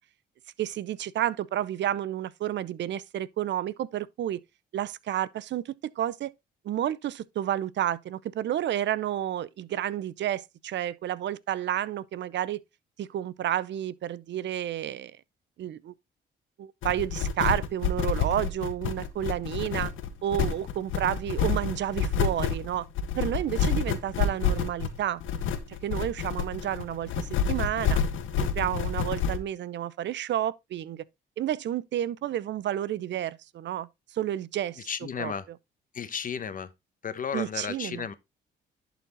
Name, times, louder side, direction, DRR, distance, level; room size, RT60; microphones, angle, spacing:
voice 1, 0.6-4.4 4.7-6.3 6.6-12.6 13.0-15.1 15.6-15.9 16.6-19.9 20.2-22.9 23.2-25.2 25.7-28.0 28.4-31.0 31.4-35.3 37.3-38.1, right 11 dB, 65° right, 0.7 m, -31 dB
sound 1, 16.8-29.4, left 6 dB, 80° left, 1.4 m, -28 dB
voice 2, 34.9-35.4 35.9-36.7 37.0-38.1, left 7 dB, 45° left, 1.0 m, -33 dB
11.0 x 4.3 x 3.9 m
cardioid pair, 90°, 20 cm